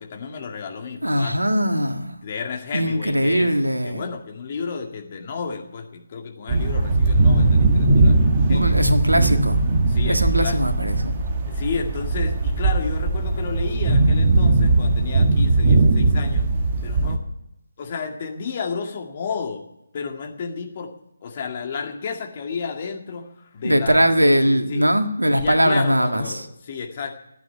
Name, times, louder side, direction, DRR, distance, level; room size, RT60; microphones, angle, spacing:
voice 1, 0.0-1.4 2.2-3.5 3.8-8.2 8.5-8.9 9.9-10.7 11.5-16.4 16.8-17.2 17.8-19.6 19.9-20.9 21.2-24.9 25.3-27.1, left 5 dB, 35° left, 3 dB, 2.0 m, -32 dB
voice 2, 1.0-2.1 2.7-4.0 8.5-9.6 10.0-11.1 23.6-26.4, equal, 85° right, 7 dB, 1.6 m, -20 dB
sound 1, 6.5-17.2, right 2 dB, 30° right, 1.3 m, -19 dB
12.0 x 9.1 x 9.8 m, 0.87 s
figure-of-eight pair, 150°, 0 cm